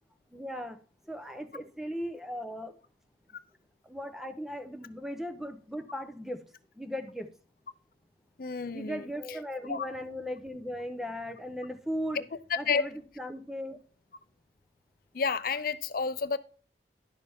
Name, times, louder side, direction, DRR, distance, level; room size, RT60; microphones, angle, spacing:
voice 1, 0.3-0.8 1.0-2.8 3.8-6.4 6.8-7.3 8.7-12.2 12.6-13.8, equal, ahead, 0.8 m, -37 dB
voice 2, 8.4-9.0 9.7-9.8 12.5-12.8 15.1-16.4, left 5 dB, 55° left, 0.6 m, -30 dB
11.0 x 6.6 x 3.6 m
head